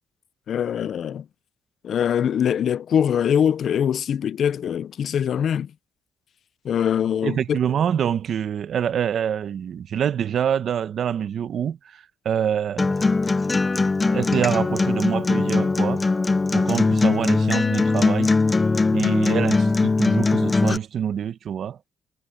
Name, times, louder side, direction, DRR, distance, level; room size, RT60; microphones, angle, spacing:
voice 1, 0.5-1.2 1.8-5.7 6.6-7.6, left 8 dB, 60° left, 0.7 m, -23 dB
voice 2, 7.2-13.0 14.0-16.0 16.5-18.3 18.9-21.8, right 8 dB, 60° right, 1.2 m, -26 dB
Acoustic guitar, 12.8-20.8, left 3 dB, 25° left, 0.8 m, -20 dB
cardioid pair, 90°, 0 cm